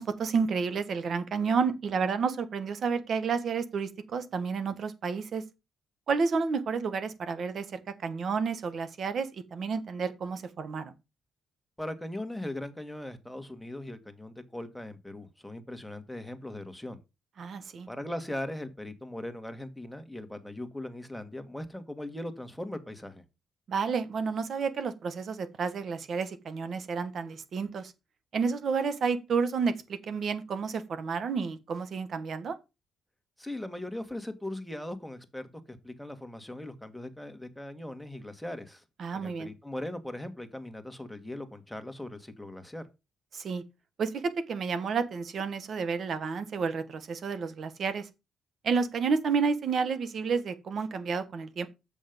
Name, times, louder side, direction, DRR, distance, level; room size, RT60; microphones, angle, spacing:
voice 1, 0.0-5.4 6.1-10.9 17.4-17.9 23.7-27.9 28.3-32.5 39.0-39.5 43.3-43.6 44.0-48.1 48.6-51.7, right 5 dB, 55° right, 1.5 m, -30 dB
voice 2, 11.8-17.0 17.9-23.2 33.4-38.8 39.1-42.8, left 1 dB, 5° left, 1.7 m, -39 dB
7.5 x 6.3 x 5.2 m
cardioid pair, 90°, 0 cm